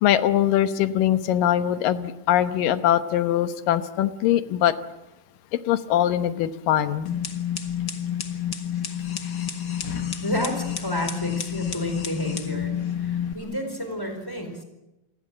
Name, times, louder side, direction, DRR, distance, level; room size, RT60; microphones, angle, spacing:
voice 1, 0.0-4.7 5.7-7.1, left 11 dB, 90° left, 11 dB, 2.8 m, -22 dB
sound 1, 7.1-13.3, left 9 dB, 45° left, 1.6 m, -29 dB
voice 2, 10.2-14.6, equal, 5° left, 5 dB, 4.2 m, -30 dB
27.5 x 20.5 x 7.5 m, 0.98 s
omnidirectional pair, 3.8 m